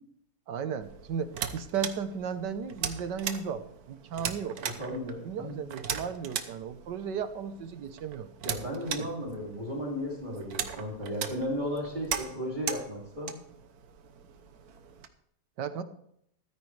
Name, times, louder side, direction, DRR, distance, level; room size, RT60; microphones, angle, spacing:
voice 1, 0.5-4.6 5.2-8.3 9.0-9.1 15.6-15.8, right 7 dB, 85° right, 11 dB, 1.6 m, -35 dB
sound 1, 0.8-15.1, right 8 dB, 65° right, 1.4 m, -39 dB
voice 2, 4.6-5.6 8.4-13.3, equal, 25° right, -3 dB, 2.9 m, -35 dB
15.0 x 13.0 x 3.3 m, 0.72 s
omnidirectional pair, 1.8 m